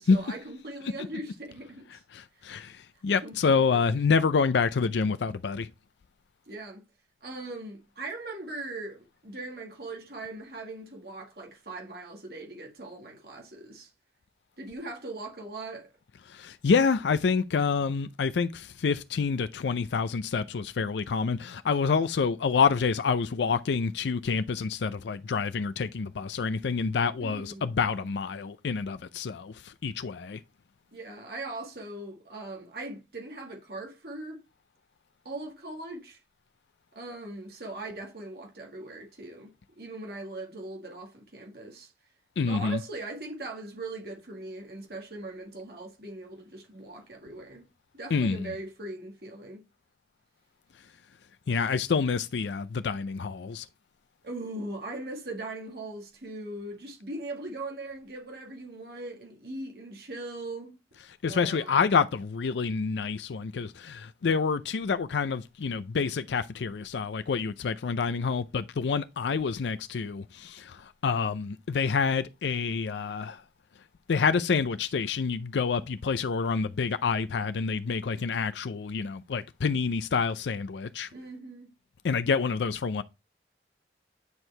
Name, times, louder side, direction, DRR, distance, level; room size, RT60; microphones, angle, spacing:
voice 1, 0.0-2.0 3.2-4.0 6.5-6.8 7.2-13.9 14.6-15.9 27.2-27.7 30.9-34.4 35.2-36.2 36.9-41.9 42.4-47.6 47.9-49.6 54.2-60.8 61.3-61.8 81.1-81.7, right 2 dB, 60° right, 1.7 m, -40 dB
voice 2, 2.1-5.7 16.3-30.4 42.4-42.8 48.1-48.5 51.5-53.7 61.2-73.4 74.1-81.1 82.0-83.0, left 5 dB, 80° left, 0.4 m, -27 dB
9.5 x 4.5 x 3.2 m
head